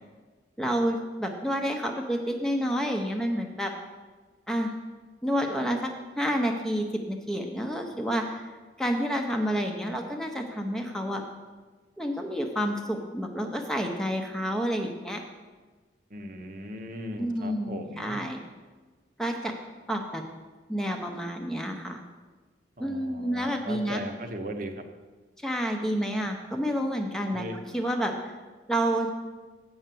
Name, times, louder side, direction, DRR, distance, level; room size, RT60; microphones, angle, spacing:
voice 1, 0.6-3.7 4.5-4.7 5.2-5.9 6.2-8.4 8.8-11.2 12.0-15.2 17.2-18.4 19.2-19.5 19.9-20.2 20.7-22.0 22.8-24.0 25.4-27.4 27.7-28.3 28.7-29.1, equal, 5° left, 2 dB, 0.6 m, -29 dB
voice 2, 16.1-18.2 22.8-24.7 27.3-27.6, equal, 50° right, 5 dB, 0.8 m, -38 dB
7.8 x 5.6 x 7.6 m, 1.3 s
head